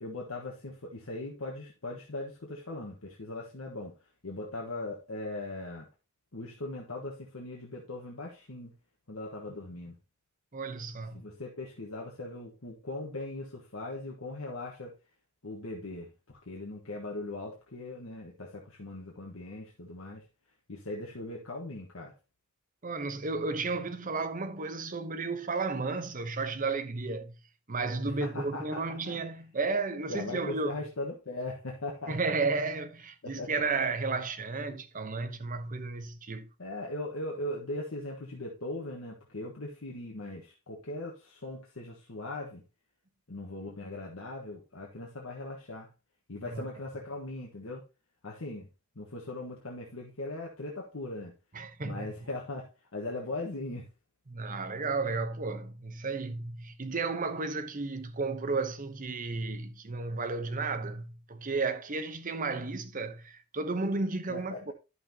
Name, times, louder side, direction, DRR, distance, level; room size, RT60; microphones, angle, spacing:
voice 1, 0.0-3.9 4.2-5.9 6.3-8.7 9.1-10.0 11.1-14.9 15.4-20.2 20.7-22.1 28.2-29.2 30.1-32.3 33.4-33.6 36.6-42.6 43.3-45.9 46.3-47.9 48.2-48.7 48.9-51.3 51.8-53.9 64.3-64.7, left 2 dB, 80° left, 1.4 m, -39 dB
voice 2, 10.5-11.2 22.8-27.3 27.7-30.8 32.1-36.5 46.5-46.6 51.5-52.1 54.3-64.7, right 3 dB, 40° right, 0.9 m, -33 dB
11.0 x 6.0 x 2.9 m
head